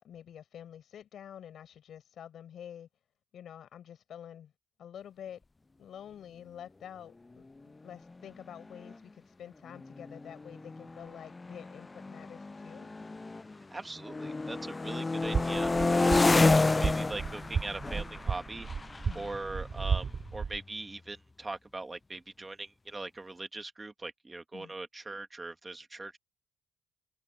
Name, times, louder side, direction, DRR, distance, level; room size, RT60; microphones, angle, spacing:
voice 1, 0.0-2.9 3.3-4.5 4.8-5.4 5.8-12.9 19.1-19.3 24.5-24.7, left 9 dB, 60° left, 5.9 m, -48 dB
sound 1, 8.2-8.3 8.6-8.9 9.7-13.6 14.0-20.6, left 3 dB, 20° left, 0.4 m, -30 dB
voice 2, 13.7-18.7 19.1-26.2, right 2 dB, 20° right, 2.6 m, -41 dB
sound 2, 15.2-20.6, right 5 dB, 40° right, 3.9 m, -34 dB
cardioid pair, 95°, 0 cm